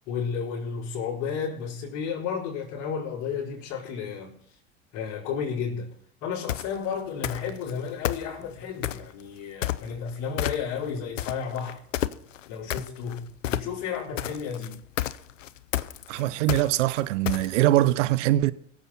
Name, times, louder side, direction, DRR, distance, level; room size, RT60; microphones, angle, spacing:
voice 1, 0.1-4.6 4.9-5.9 6.2-11.8 12.5-14.8, left 6 dB, 55° left, 4.6 m, -32 dB
sound 1, 6.5-6.7 7.2-7.7 8.0-9.1 9.6-10.1 10.4-10.9 11.2-17.8, left 13 dB, 85° left, 0.7 m, -30 dB
voice 2, 16.1-18.5, right 15 dB, 75° right, 0.8 m, -22 dB
23.0 x 8.0 x 4.3 m
hypercardioid pair, 80°, 37 cm